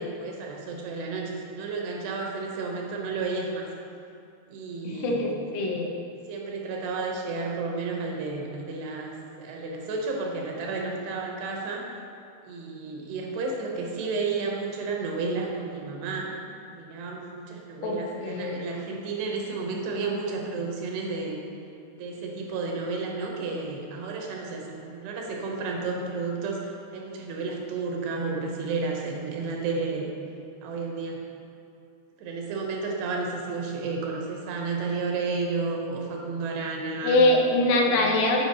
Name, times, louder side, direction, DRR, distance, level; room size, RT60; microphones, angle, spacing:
voice 1, 0.0-3.7 4.5-5.3 6.3-11.9 12.4-16.4 16.7-21.4 21.9-30.1 30.6-31.2 32.2-37.2 37.8-38.3, right 4 dB, 80° right, 0 dB, 2.9 m, -32 dB
voice 2, 4.8-5.9 17.8-18.6 37.0-38.5, left 2 dB, 90° left, 1 dB, 3.0 m, -23 dB
7.9 x 5.1 x 4.1 m, 2.5 s
omnidirectional pair, 4.7 m